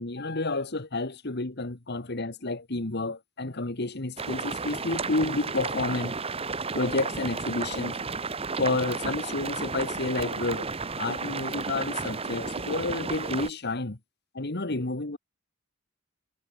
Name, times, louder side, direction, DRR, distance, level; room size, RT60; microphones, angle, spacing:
voice 1, 0.0-6.1 6.7-8.0 8.6-10.7 11.0-14.0 14.3-15.2, left 2 dB, 55° left, 1.6 m, -30 dB
sound 1, 4.2-13.5, right 4 dB, 30° right, 1.3 m, -33 dB
head